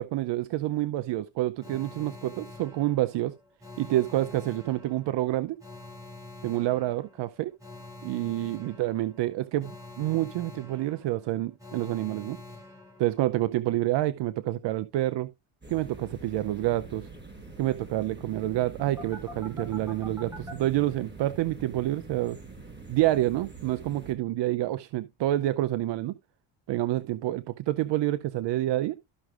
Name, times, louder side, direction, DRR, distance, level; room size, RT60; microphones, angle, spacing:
voice 1, 0.0-3.3 3.8-5.6 6.4-7.5 8.0-9.7 10.0-12.4 13.0-15.3 15.7-17.1 17.6-22.4 22.9-26.1 26.7-29.0, right 15 dB, 65° right, 0.7 m, -28 dB
Alarm, 1.6-13.5 19.0-20.5, left 2 dB, 5° right, 4.5 m, -46 dB
sound 1, 15.6-24.1, right 3 dB, 20° right, 5.9 m, -44 dB
13.5 x 6.0 x 2.5 m
supercardioid pair, 60°, 47 cm